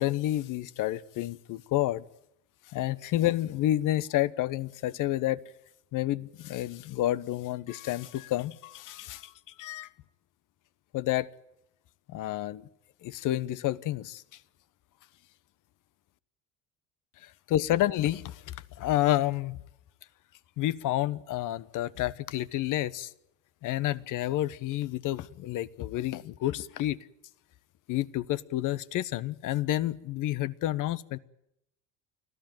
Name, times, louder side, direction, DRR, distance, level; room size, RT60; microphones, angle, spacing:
voice 1, 0.0-2.0 2.7-5.4 5.9-9.3 9.6-9.9 10.9-11.3 12.1-12.6 13.0-14.2 17.2-19.6 20.6-23.1 23.6-27.0 27.9-31.2, left 14 dB, 55° left, 1.1 m, -29 dB
25.5 x 15.5 x 9.1 m
supercardioid pair, 80°, 37 cm